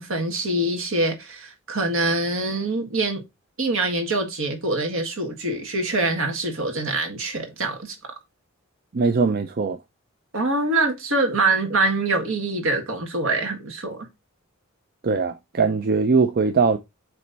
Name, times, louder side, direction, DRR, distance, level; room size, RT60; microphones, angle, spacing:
voice 1, 0.0-3.2 3.6-8.0 10.3-14.1, right 2 dB, 65° right, 1.7 m, -24 dB
voice 2, 8.9-9.8 15.0-16.8, right 4 dB, 45° right, 0.5 m, -21 dB
7.6 x 3.1 x 4.0 m
head